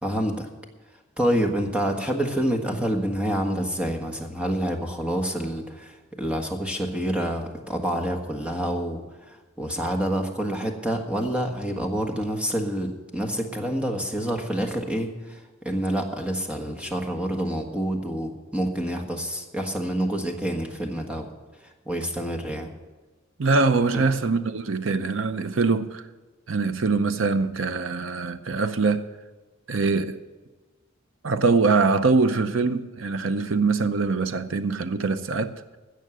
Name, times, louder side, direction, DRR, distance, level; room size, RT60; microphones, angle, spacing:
voice 1, 0.0-0.5 1.2-9.0 9.3-21.3 21.8-22.7 23.9-24.0, equal, 5° right, 1.5 m, -27 dB
voice 2, 23.4-26.0 26.5-29.1 29.7-30.2 31.2-35.5, right 4 dB, 70° right, 0.7 m, -23 dB
16.0 x 6.5 x 7.7 m
head